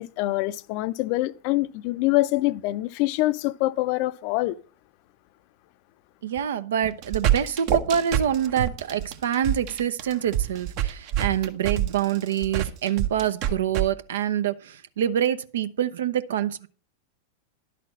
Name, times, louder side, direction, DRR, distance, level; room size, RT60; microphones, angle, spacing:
voice 1, 0.0-4.5, left 18 dB, 50° left, 0.5 m, -25 dB
voice 2, 6.2-16.7, right 9 dB, 70° right, 0.7 m, -26 dB
sound 1, 6.8-13.9, right 11 dB, 50° right, 1.0 m, -26 dB
11.5 x 4.2 x 7.5 m
hypercardioid pair, 95°, 0 cm